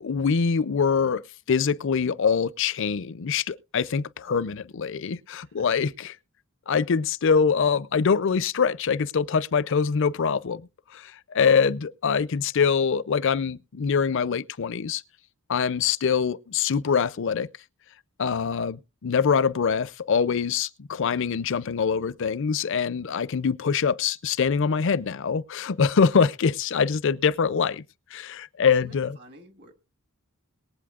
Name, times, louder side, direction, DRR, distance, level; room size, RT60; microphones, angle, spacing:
voice 1, 0.0-1.2 1.5-6.2 6.7-10.6 10.9-15.0 15.5-17.5 18.2-27.8 28.1-29.1, left 6 dB, 60° left, 0.5 m, -24 dB
voice 2, 28.6-29.8, right 1 dB, 50° right, 1.7 m, -49 dB
22.0 x 8.2 x 2.4 m
head